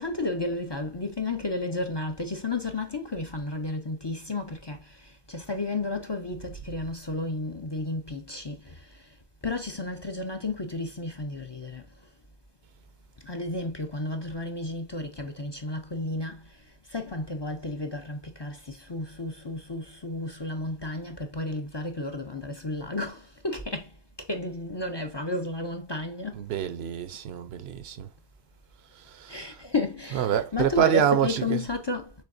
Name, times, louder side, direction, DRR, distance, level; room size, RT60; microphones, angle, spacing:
voice 1, 0.0-9.1 9.4-11.9 13.2-26.4 29.3-32.1, left 2 dB, 30° left, 0.6 m, -32 dB
voice 2, 26.3-28.1 29.1-29.6 30.1-31.6, right 9 dB, 80° right, 0.9 m, -26 dB
6.5 x 3.2 x 2.5 m
omnidirectional pair, 1.0 m